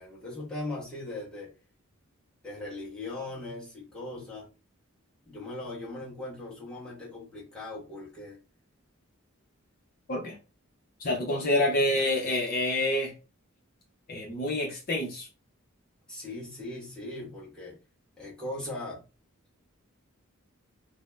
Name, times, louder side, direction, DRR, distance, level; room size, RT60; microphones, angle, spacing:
voice 1, 0.0-1.5 2.4-4.5 5.3-8.4 16.1-17.8 18.2-19.0, left 2 dB, 5° left, 1.1 m, -39 dB
voice 2, 11.0-13.1 14.1-15.3, left 1 dB, 45° left, 0.7 m, -27 dB
2.6 x 2.0 x 3.3 m
head